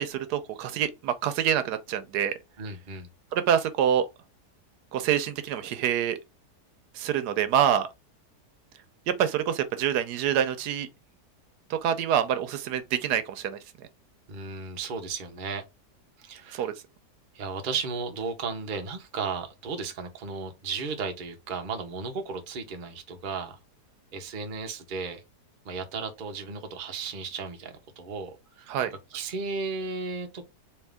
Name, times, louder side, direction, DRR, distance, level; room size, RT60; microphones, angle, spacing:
voice 1, 0.0-2.3 3.3-4.1 4.9-6.2 6.9-7.9 9.1-10.9 11.7-13.6 16.5-16.7 28.7-28.9, right 9 dB, 80° right, 1.2 m, -26 dB
voice 2, 2.6-3.1 14.3-15.6 16.2-16.7 17.3-23.6 24.1-25.2 25.6-28.7 29.1-30.4, right 4 dB, 45° right, 0.7 m, -34 dB
3.7 x 2.9 x 3.3 m
omnidirectional pair, 1.7 m